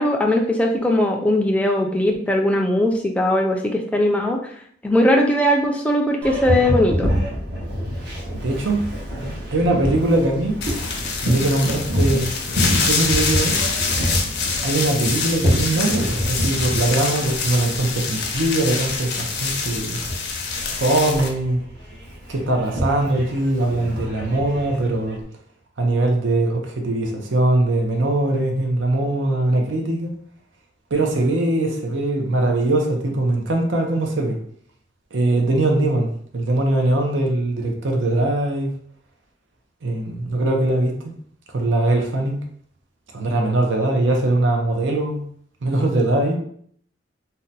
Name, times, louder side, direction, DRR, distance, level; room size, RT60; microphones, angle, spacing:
voice 1, 0.0-4.5 4.8-7.1, left 1 dB, 5° left, 1 dB, 0.3 m, -19 dB
Boat Water vehicle, 6.2-25.2, equal, 60° right, 1.0 m, -27 dB
voice 2, 8.4-8.8 9.5-10.6 11.2-12.3 12.9-13.6 14.6-20.0 20.7-21.6 22.3-25.2 25.8-30.1 30.9-34.4 35.1-38.7 39.8-41.1 41.5-42.4 43.1-45.2 45.6-46.4, right 2 dB, 80° right, 2 dB, 0.6 m, -21 dB
sound 1, 10.6-21.3, left 4 dB, 60° left, 0.5 m, -25 dB
2.7 x 2.2 x 3.9 m, 0.62 s
head